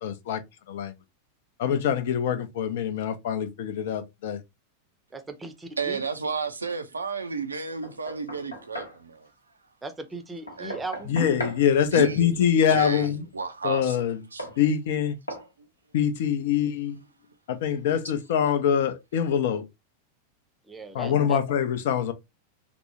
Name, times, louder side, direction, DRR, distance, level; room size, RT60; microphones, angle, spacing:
voice 1, 0.0-0.4 0.7-0.9 1.6-4.4 11.1-13.3 13.6-14.2 14.6-15.2 15.9-17.0 17.5-19.6 20.9-22.1, left 8 dB, 55° left, 0.5 m, -24 dB
voice 2, 5.1-5.5 5.8-6.0 9.8-11.1 20.7-21.4, right 3 dB, 10° right, 0.6 m, -37 dB
voice 3, 5.8-9.3 10.6-10.8 11.9-12.3 12.7-14.0 14.3-14.5, right 5 dB, 75° right, 0.4 m, -32 dB
Knock, 7.8-9.0 10.5-11.6 13.7-13.8 14.4-14.6 15.3-15.5, equal, 75° left, 0.9 m, -37 dB
3.4 x 2.0 x 2.8 m
figure-of-eight pair, 90°, 0 cm